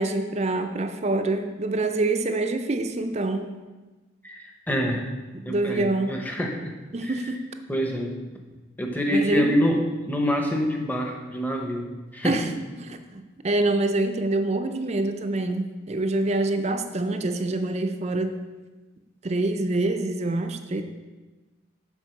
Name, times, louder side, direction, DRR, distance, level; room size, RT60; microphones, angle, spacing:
voice 1, 0.0-3.5 5.5-6.2 6.9-7.5 9.1-9.5 12.2-12.5 12.8-18.4 19.2-20.8, right 2 dB, 35° right, 7 dB, 0.5 m, -26 dB
voice 2, 4.2-5.0 5.4-6.7 7.0-7.2 7.7-8.2 8.8-12.4, equal, 10° left, 1 dB, 0.8 m, -26 dB
8.2 x 4.4 x 5.8 m, 1.2 s
head